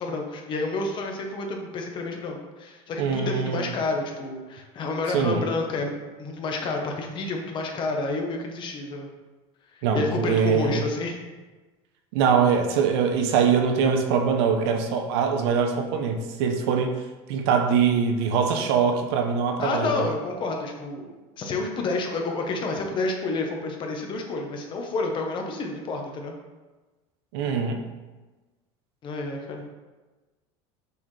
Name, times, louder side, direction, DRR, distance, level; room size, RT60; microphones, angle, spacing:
voice 1, 0.0-9.1 9.8-11.2 19.6-26.3 29.0-29.6, left 3 dB, 35° left, 2 dB, 1.0 m, -29 dB
voice 2, 3.0-3.7 5.1-5.4 9.8-10.8 12.1-17.0 17.3-20.1 27.3-27.8, right 6 dB, 80° right, 5 dB, 0.8 m, -23 dB
6.8 x 4.3 x 3.3 m, 1.2 s
cardioid pair, 140°, 13 cm